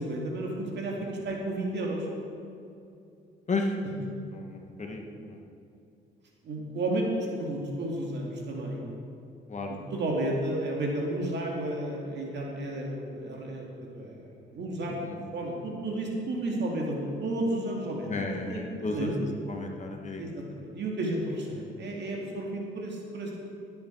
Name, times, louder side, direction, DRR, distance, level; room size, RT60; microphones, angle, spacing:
voice 1, 0.0-2.1 6.4-8.9 9.9-13.7 13.9-14.2 14.5-15.0 15.3-19.1 20.2-23.3, right 1 dB, 60° right, -1 dB, 2.4 m, -32 dB
voice 2, 4.3-5.4 9.5-9.7 14.9-15.2 18.1-19.1 19.5-20.2, left 3 dB, 35° left, 2 dB, 1.7 m, -33 dB
17.0 x 8.3 x 4.7 m, 2.6 s
cardioid pair, 90°, 20 cm